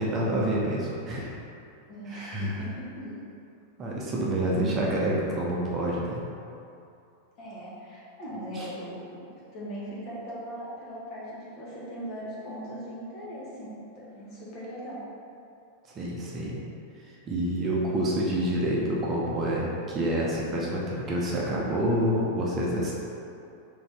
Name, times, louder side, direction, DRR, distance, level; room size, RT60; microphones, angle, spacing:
voice 1, 0.0-1.3 2.1-2.5 3.0-3.1 3.8-6.2 8.6-8.7 15.9-16.6 17.3-22.9, right 1 dB, 25° right, -4 dB, 0.7 m, -28 dB
voice 2, 1.9-3.1 7.4-9.0 9.5-15.0, equal, 40° left, -7 dB, 1.3 m, -39 dB
4.0 x 3.4 x 3.5 m, 2.6 s
figure-of-eight pair, 90°, 0 cm